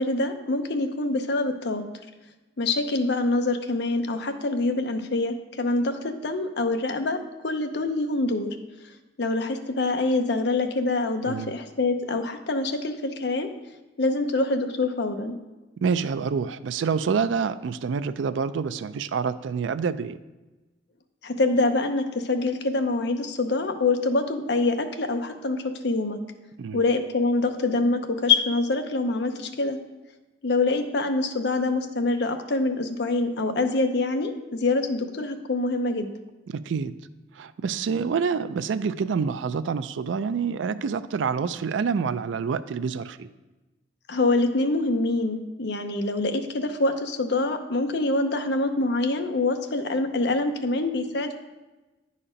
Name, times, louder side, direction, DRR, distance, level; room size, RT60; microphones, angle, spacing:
voice 1, 0.0-1.8 2.6-7.2 7.4-8.6 9.2-13.5 14.0-15.3 21.2-26.2 26.7-29.8 30.4-36.1 44.1-51.4, left 2 dB, 65° left, 7 dB, 0.7 m, -25 dB
voice 2, 15.8-20.2 26.6-26.8 36.5-36.9 37.3-43.3, right 5 dB, 85° right, 13 dB, 0.4 m, -27 dB
9.9 x 4.3 x 5.0 m, 1.1 s
head